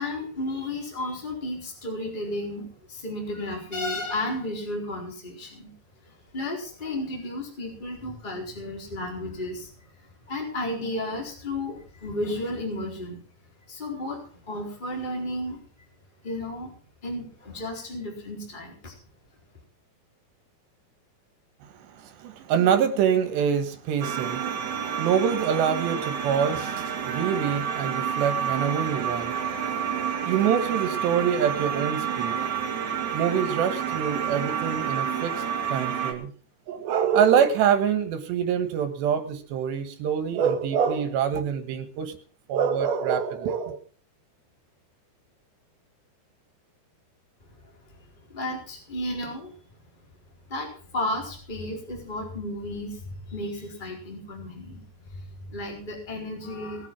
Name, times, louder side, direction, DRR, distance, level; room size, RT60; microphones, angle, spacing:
voice 1, 0.0-5.7 6.0-9.9 10.3-13.2 13.7-15.7 16.2-16.8 17.0-19.0 47.6-47.7 48.3-49.5 50.5-56.9, left 1 dB, 10° left, 4.2 m, -33 dB
voice 2, 21.7-29.4 30.0-32.6 33.1-36.3 36.7-42.2 42.5-43.8, right 8 dB, 80° right, 3.7 m, -25 dB
sound 1, 24.0-36.1, right 8 dB, 50° right, 3.2 m, -29 dB
20.0 x 8.4 x 6.1 m
omnidirectional pair, 4.9 m